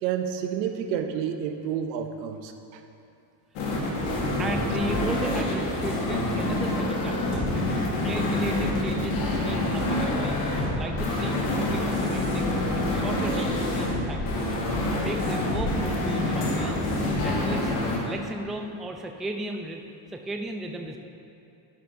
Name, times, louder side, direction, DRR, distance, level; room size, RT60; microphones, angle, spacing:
voice 1, 0.0-2.8, right 8 dB, 85° right, 7 dB, 0.7 m, -30 dB
sound 1, 3.6-18.0, left 1 dB, 75° left, 1.6 m, -26 dB
voice 2, 4.4-7.5 8.0-11.4 11.7-14.5 15.0-16.8 17.2-17.8 18.0-19.8 20.1-21.0, right 2 dB, ahead, 3 dB, 0.3 m, -36 dB
sound 2, 8.7-14.4, right 2 dB, 70° right, 1.5 m, -44 dB
11.0 x 6.0 x 2.6 m, 2.6 s
supercardioid pair, 75°, 49 cm